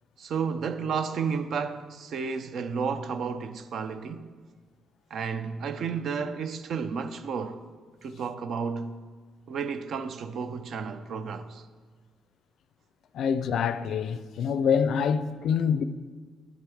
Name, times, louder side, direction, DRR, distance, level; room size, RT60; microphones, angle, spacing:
voice 1, 0.2-4.3 5.1-7.6 8.0-9.0 9.5-11.6, right 5 dB, 65° right, 0.5 m, -32 dB
voice 2, 13.1-15.8, left 7 dB, 70° left, 0.4 m, -26 dB
11.0 x 7.7 x 3.5 m
cardioid pair, 90°, 0 cm